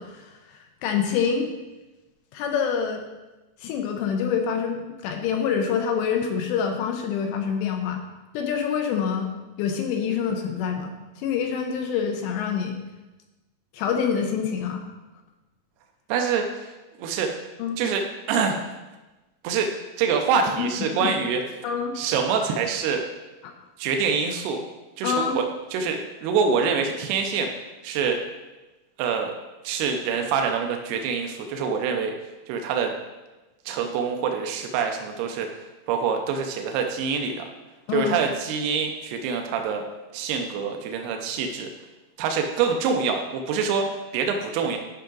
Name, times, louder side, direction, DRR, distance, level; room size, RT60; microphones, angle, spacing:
voice 1, 0.0-1.5 2.3-3.0 3.6-8.0 8.3-9.3 9.6-12.8 13.7-14.8 17.6-17.8 20.6-20.7 21.0-21.1 21.6-21.9 23.4-23.5 25.0-25.4 37.9-38.2, left 7 dB, 80° left, 3 dB, 2.7 m, -26 dB
voice 2, 16.1-17.4 17.8-18.0 18.3-18.6 19.4-19.7 20.0-21.4 22.0-23.0 23.8-24.6 25.0-25.5 25.7-27.5 27.8-28.2 29.0-29.4 29.6-32.1 32.5-32.9 33.7-35.5 35.9-37.5 37.9-39.8 40.1-41.7 42.2-44.8, right 6 dB, 80° right, 4 dB, 2.3 m, -25 dB
11.5 x 5.7 x 3.8 m, 1.1 s
omnidirectional pair, 5.4 m